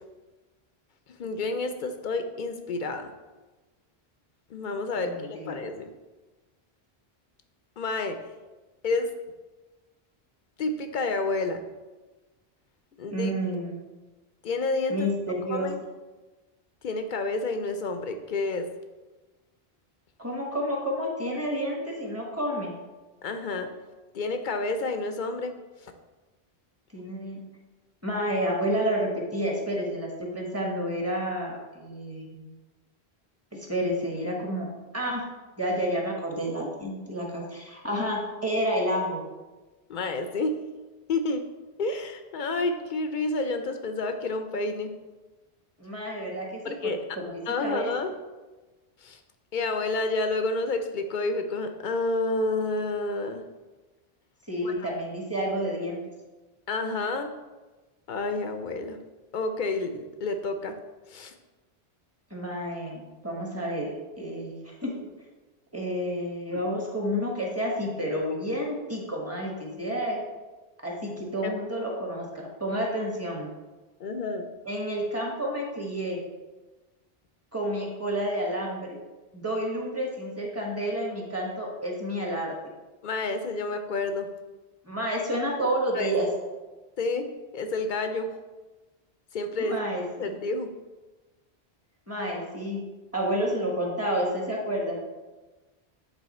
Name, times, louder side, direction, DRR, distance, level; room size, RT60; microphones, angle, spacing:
voice 1, 1.2-3.1 4.5-5.9 7.8-8.2 8.8-9.1 10.6-11.6 13.0-13.3 14.4-15.1 15.5-15.8 16.8-18.7 23.2-23.7 24.1-25.5 25.8-25.9 39.9-40.6 41.1-41.4 41.8-44.9 46.6-47.0 47.5-48.1 49.0-49.2 49.5-53.4 54.6-54.9 56.7-57.3 58.1-59.0 59.3-60.8 61.1-61.3 66.5-66.6 71.4-71.5 74.0-74.5 83.0-84.3 85.9-86.1 87.0-87.3 87.5-88.3 89.3-90.7, left 3 dB, 60° left, 7 dB, 0.6 m, -29 dB
voice 2, 5.0-5.6 13.1-13.8 14.9-15.7 20.2-22.7 26.9-27.4 28.0-32.5 33.5-35.2 35.6-39.2 45.8-47.9 54.5-56.0 62.3-64.9 65.7-70.2 70.8-73.5 74.6-76.2 77.5-79.0 79.3-82.5 84.9-86.3 89.6-90.3 92.1-92.8 93.1-95.0, equal, 15° right, -1 dB, 1.1 m, -30 dB
8.1 x 3.4 x 4.2 m, 1.2 s
omnidirectional pair, 1.1 m